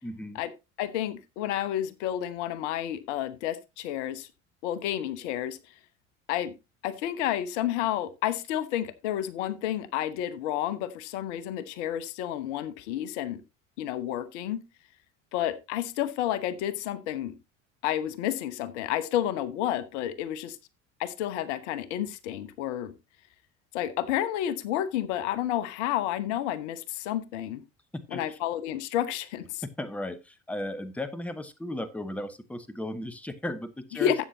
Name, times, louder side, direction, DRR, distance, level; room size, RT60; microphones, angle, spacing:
voice 1, 0.0-0.4 28.1-28.4 29.8-34.2, left 1 dB, 5° left, 1.0 m, -36 dB
voice 2, 0.8-4.3 4.6-5.6 6.3-6.5 6.8-13.4 13.8-14.6 15.3-17.4 17.8-20.6 21.0-22.9 23.7-27.6 28.1-29.6 33.9-34.2, left 11 dB, 65° left, 1.1 m, -30 dB
12.5 x 8.3 x 2.8 m
figure-of-eight pair, 65°, 38 cm